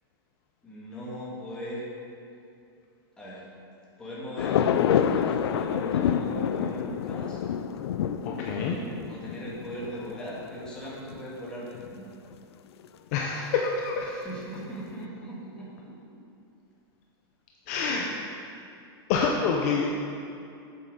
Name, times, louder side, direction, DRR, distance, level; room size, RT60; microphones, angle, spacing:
voice 1, 0.6-1.9 3.2-3.4 4.0-4.6 4.9-7.4 8.4-8.8 9.1-12.1 14.1-15.9 17.7-18.3, equal, 5° left, -7 dB, 1.8 m, -39 dB
sound 1, 4.4-11.2 11.5-11.6 11.7-11.9 12.8-12.9, left 8 dB, 80° left, 0.5 m, -28 dB
voice 2, 8.2-8.8 13.1-14.1 17.7-18.0 19.1-19.9, left 5 dB, 35° left, 0 dB, 0.7 m, -27 dB
8.0 x 7.8 x 4.9 m, 2.6 s
supercardioid pair, 170°, 13 cm